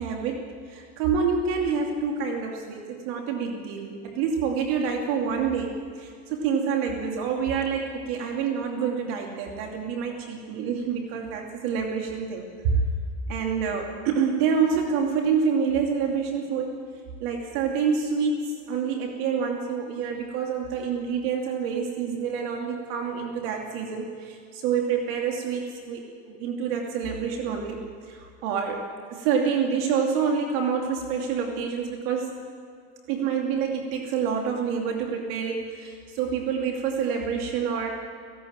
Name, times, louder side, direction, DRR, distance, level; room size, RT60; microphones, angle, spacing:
voice 1, 0.0-12.8 13.3-16.8 17.2-32.3 33.1-37.9, right 6 dB, 75° right, 1 dB, 2.7 m, -27 dB
18.5 x 16.5 x 8.9 m, 2.3 s
supercardioid pair, 125°, 31 cm